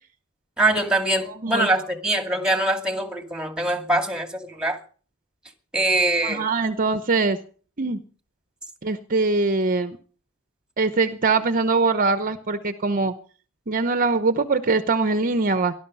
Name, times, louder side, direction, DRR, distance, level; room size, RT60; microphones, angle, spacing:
voice 1, 0.6-4.8 5.7-6.5, right 1 dB, 5° right, 2.3 m, -23 dB
voice 2, 6.2-7.4 7.8-8.0 8.8-10.0 10.8-13.1 13.7-15.7, right 3 dB, 40° right, 0.9 m, -22 dB
18.5 x 12.0 x 5.5 m
head